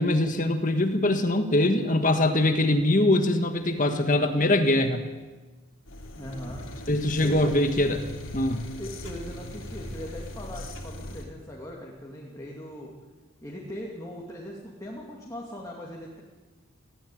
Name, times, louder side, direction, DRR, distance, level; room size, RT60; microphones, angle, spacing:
voice 1, 0.0-5.0 6.9-8.0 8.3-8.7, left 1 dB, 40° left, 7 dB, 1.6 m, -23 dB
sound 1, 5.8-11.2, left 1 dB, 70° left, 3.1 m, -39 dB
voice 2, 6.2-6.6 7.2-7.5 8.8-12.9 13.4-16.2, equal, 15° left, -2 dB, 2.6 m, -39 dB
18.5 x 16.0 x 9.3 m, 1.3 s
head